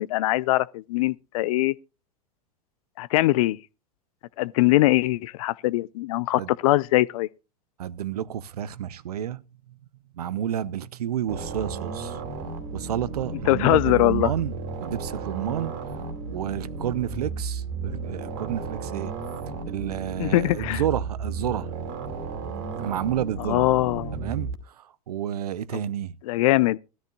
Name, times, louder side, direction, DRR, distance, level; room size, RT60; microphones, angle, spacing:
voice 1, 0.0-1.7 3.0-3.6 4.4-7.3 13.5-14.3 20.2-20.8 23.5-24.1 26.3-26.8, left 17 dB, 60° left, 0.5 m, -22 dB
voice 2, 7.8-9.8 10.1-12.2 12.7-15.7 16.3-19.1 19.7-21.7 22.8-23.6 24.1-26.2, right 10 dB, 75° right, 0.7 m, -30 dB
sound 1, 11.3-24.6, right 4 dB, 55° right, 2.5 m, -33 dB
16.5 x 13.0 x 2.3 m
hypercardioid pair, 90°, 20 cm